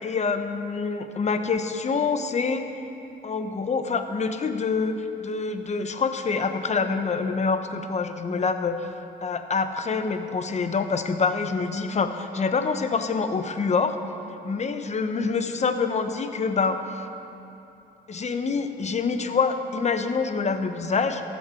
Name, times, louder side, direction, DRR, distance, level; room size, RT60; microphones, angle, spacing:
voice 1, 0.0-2.6 3.2-8.9 9.2-14.0 14.4-17.1 18.1-21.2, left 4 dB, 35° left, 8 dB, 0.9 m, -26 dB
14.0 x 8.4 x 6.3 m, 2.8 s
cardioid pair, 90°, 20 cm